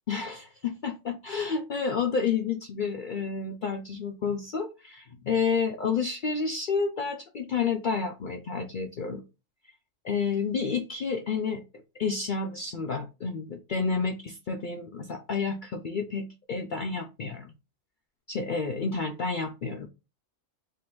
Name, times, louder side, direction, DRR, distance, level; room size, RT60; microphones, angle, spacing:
voice 1, 0.1-9.2 10.0-11.6 12.0-17.5 18.3-19.9, left 5 dB, 80° left, 4 dB, 0.4 m, -30 dB
3.7 x 2.5 x 4.5 m, 0.28 s
omnidirectional pair, 1.5 m